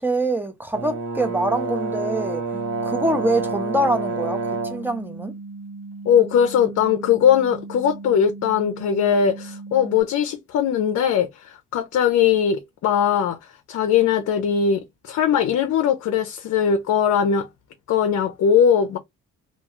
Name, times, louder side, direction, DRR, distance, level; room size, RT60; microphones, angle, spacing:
voice 1, 0.0-2.4 2.8-5.3, right 1 dB, 5° right, 0.7 m, -24 dB
Brass instrument, 0.7-4.9, right 4 dB, 55° right, 0.9 m, -28 dB
sound 1, 2.5-10.0, right 3 dB, 80° right, 1.2 m, -38 dB
voice 2, 6.1-13.4 13.7-17.5 17.9-19.0, left 8 dB, 60° left, 0.6 m, -20 dB
2.4 x 2.2 x 2.9 m
cardioid pair, 90°, 30 cm